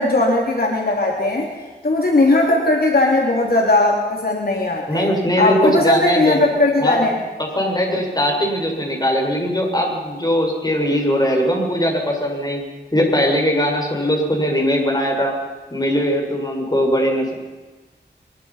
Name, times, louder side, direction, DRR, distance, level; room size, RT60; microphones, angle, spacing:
voice 1, 0.0-1.5 1.8-5.1 5.4-7.1, left 2 dB, 55° left, 0 dB, 3.6 m, -18 dB
voice 2, 4.9-6.5 6.8-7.1 7.4-12.6 12.9-15.3 15.7-17.3, equal, 20° left, 1 dB, 6.6 m, -20 dB
23.5 x 22.0 x 5.9 m, 1.3 s
wide cardioid pair, 70°, 18 cm